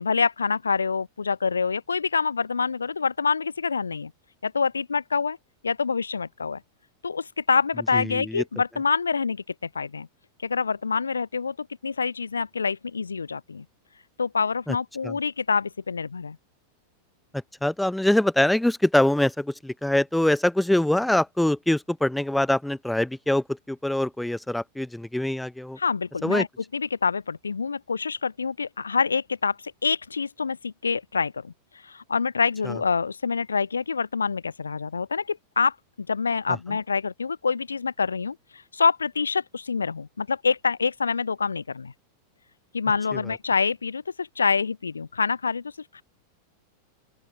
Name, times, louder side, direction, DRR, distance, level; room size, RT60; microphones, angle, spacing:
voice 1, 0.0-4.1 4.4-5.4 5.6-6.6 7.0-9.4 9.7-10.1 10.4-13.6 14.2-16.4 25.8-26.5 26.7-31.5 31.8-41.9 42.7-45.6 45.9-46.0, left 5 dB, 75° left, 0.3 m, -26 dB
voice 2, 7.9-8.4 14.7-14.8 15.0-15.1 17.6-25.8 26.2-26.4 32.7-32.8, left 1 dB, 5° left, 0.6 m, -24 dB
open air
figure-of-eight pair, 90°, 0 cm